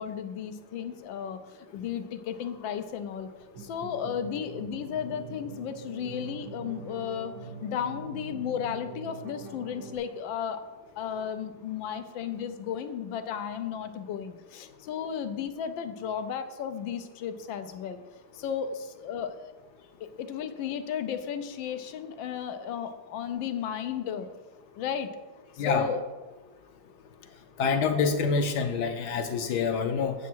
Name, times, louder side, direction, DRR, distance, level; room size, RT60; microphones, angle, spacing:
voice 1, 0.0-3.3 3.6-10.6 11.0-18.0 18.3-19.3 20.0-24.3 24.8-25.1 25.5-26.0, left 8 dB, 85° left, 9 dB, 1.4 m, -34 dB
sound 1, 3.4-10.0, right 4 dB, 80° right, 2.0 m, -43 dB
voice 2, 27.6-30.1, left 5 dB, 70° left, 6 dB, 1.2 m, -26 dB
8.3 x 7.3 x 4.5 m, 1.2 s
omnidirectional pair, 2.0 m